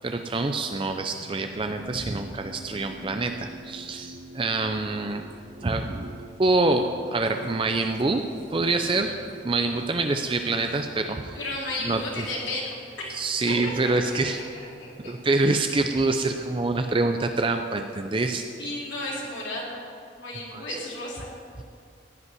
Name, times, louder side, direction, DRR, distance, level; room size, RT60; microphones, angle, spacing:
voice 1, 0.0-5.2 5.6-8.2 8.5-9.1 9.4-11.4 11.8-12.3 13.1-14.4 15.0-18.4 20.5-20.8, right 2 dB, 25° right, 6 dB, 0.4 m, -26 dB
sound 1, 1.1-16.2 17.4-18.0, right 2 dB, 90° right, 2.4 m, -47 dB
voice 2, 11.3-13.1 13.5-14.6 15.0-15.1 18.6-19.8 20.2-21.3, left 2 dB, 75° left, -4 dB, 3.4 m, -33 dB
15.5 x 5.4 x 9.7 m, 2.3 s
head